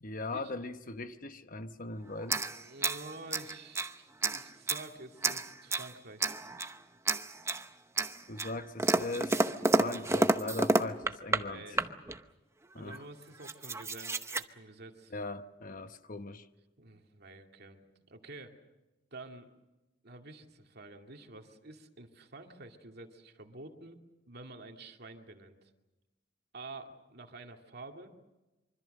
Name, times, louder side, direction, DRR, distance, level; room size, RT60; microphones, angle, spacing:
voice 1, 0.0-2.4 8.3-9.4 9.7-11.8 12.7-13.0 15.1-16.5, left 2 dB, 45° left, 1.1 m, -40 dB
sound 1, 2.2-3.9 4.2-4.9 5.2-5.9 6.2-6.8 7.1-7.6 8.0-11.4 11.7-12.2 12.9-13.0 13.2-14.4, right 2 dB, 15° right, 0.8 m, -30 dB
voice 2, 2.5-6.3 11.3-12.0 12.7-15.1 16.8-18.6 19.1-19.5 20.0-24.0 24.3-25.7 26.5-28.1, right 2 dB, 60° right, 2.3 m, -49 dB
25.0 x 24.5 x 6.6 m
head